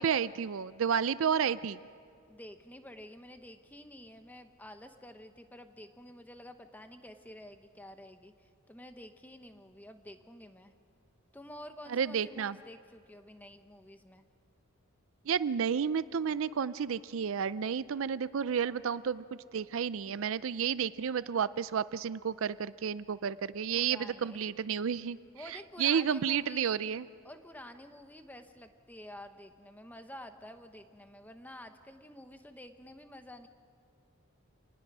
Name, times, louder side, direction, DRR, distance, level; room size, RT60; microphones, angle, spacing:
voice 1, 0.0-1.8 11.9-12.6 15.3-19.2 19.5-25.2 25.8-27.0, right 7 dB, 65° right, 16 dB, 0.4 m, -31 dB
voice 2, 2.3-10.7 11.3-14.3 23.7-24.4 25.3-26.8 27.2-33.5, left 1 dB, 10° left, 7 dB, 1.0 m, -50 dB
27.5 x 20.0 x 6.1 m, 2.4 s
head